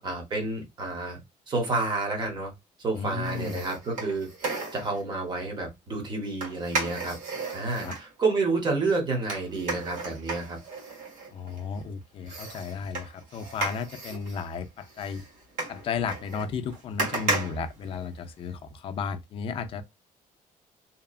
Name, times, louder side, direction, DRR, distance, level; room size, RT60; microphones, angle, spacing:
voice 1, 0.0-1.2 1.5-2.5 2.8-7.2 7.5-10.6, right 3 dB, 30° right, 1.1 m, -29 dB
voice 2, 2.9-3.6 7.8-8.0 11.3-15.2 15.7-19.8, left 6 dB, 40° left, 0.4 m, -34 dB
sound 1, 3.2-5.0 6.4-8.1 9.3-11.8 12.3-18.5 18.9-19.0, right 3 dB, 65° right, 1.4 m, -35 dB
2.8 x 2.3 x 2.3 m
cardioid pair, 165°, 14 cm